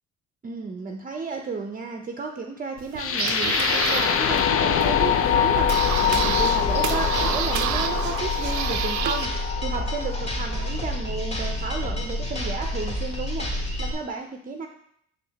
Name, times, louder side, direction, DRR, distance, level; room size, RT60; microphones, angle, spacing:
voice 1, 0.4-13.5 13.8-14.7, right 4 dB, 30° right, 3 dB, 0.6 m, -33 dB
sound 1, 2.8-9.3, right 10 dB, 75° right, 0.5 m, -30 dB
sound 2, 3.0-11.0, left 9 dB, 50° left, 0.5 m, -24 dB
sound 3, 5.6-13.9, left 1 dB, 20° left, 1.9 m, -29 dB
6.4 x 4.8 x 4.0 m, 0.71 s
cardioid pair, 90°, 30 cm